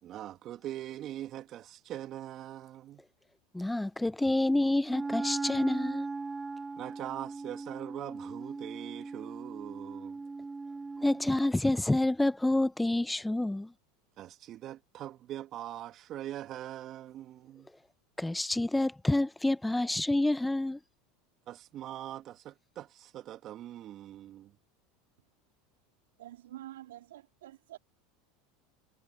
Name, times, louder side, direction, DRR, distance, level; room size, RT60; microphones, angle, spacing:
voice 1, 0.0-3.0 6.8-10.2 14.2-17.7 21.5-24.5, right 12 dB, 45° right, 2.0 m, -42 dB
voice 2, 3.5-6.1 11.0-13.7 18.2-20.8, left 1 dB, 5° left, 0.9 m, -28 dB
Wind instrument woodwind instrument, 4.8-11.5, right 3 dB, 15° right, 0.6 m, -38 dB
voice 3, 26.2-27.8, right 14 dB, 80° right, 3.3 m, -47 dB
hypercardioid pair, 85°, 0 cm